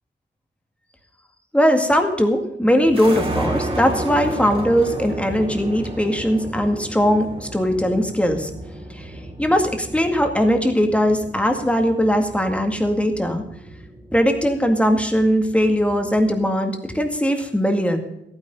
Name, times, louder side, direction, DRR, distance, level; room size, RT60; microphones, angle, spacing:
voice 1, 1.5-8.5 8.9-9.1 9.4-13.4 14.1-18.0, equal, 5° left, 5 dB, 2.0 m, -20 dB
sound 1, 2.8-16.4, right 1 dB, 30° right, 2.6 m, -33 dB
15.0 x 9.6 x 5.5 m, 0.82 s
wide cardioid pair, 135°, 19 cm